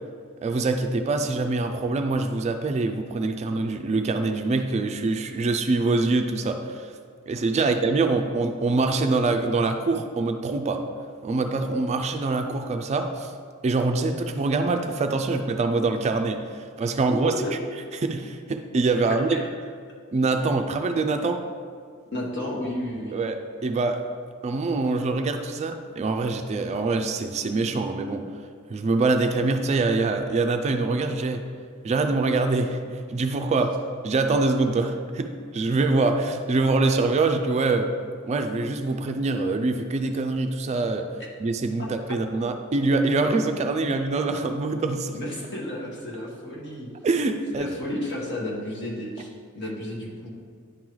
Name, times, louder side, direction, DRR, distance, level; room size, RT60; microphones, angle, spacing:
voice 1, 0.4-6.9 7.3-10.9 11.2-13.3 13.6-17.3 18.0-19.4 20.1-21.4 23.1-23.4 23.6-24.1 24.4-28.3 28.7-31.4 31.8-33.8 34.0-37.9 38.2-41.1 41.4-45.2 47.0-47.7, right 3 dB, 30° right, 6 dB, 0.3 m, -24 dB
voice 2, 19.1-19.4 22.1-23.2 41.8-41.9 45.1-46.9 47.5-49.3 49.5-50.3, left 1 dB, 55° left, -3 dB, 1.3 m, -32 dB
9.9 x 3.8 x 3.1 m, 2.1 s
head